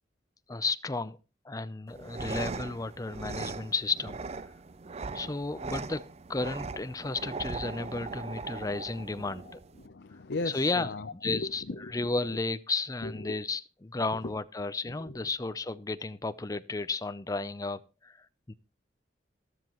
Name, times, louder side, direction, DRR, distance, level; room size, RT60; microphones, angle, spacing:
voice 1, 0.5-1.2 1.4-4.2 5.1-9.6 10.5-11.6 11.9-18.5, left 3 dB, 20° left, 0.6 m, -33 dB
sound 1, 1.9-9.9, right 4 dB, 35° right, 0.5 m, -39 dB
voice 2, 9.2-12.4 13.0-13.4 14.1-14.3 14.8-15.3, left 2 dB, 70° left, 0.7 m, -39 dB
13.0 x 13.0 x 3.0 m
head